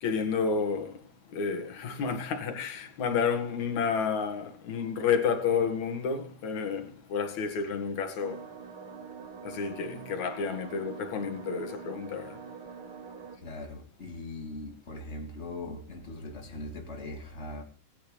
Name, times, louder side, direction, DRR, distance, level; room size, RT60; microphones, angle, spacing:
voice 1, 0.0-8.5 9.4-12.4, left 6 dB, 65° left, 3.2 m, -30 dB
sound 1, 8.2-13.4, right 6 dB, 45° right, 2.8 m, -44 dB
voice 2, 13.3-17.6, left 2 dB, 20° left, 3.3 m, -40 dB
24.0 x 10.5 x 3.3 m
omnidirectional pair, 3.6 m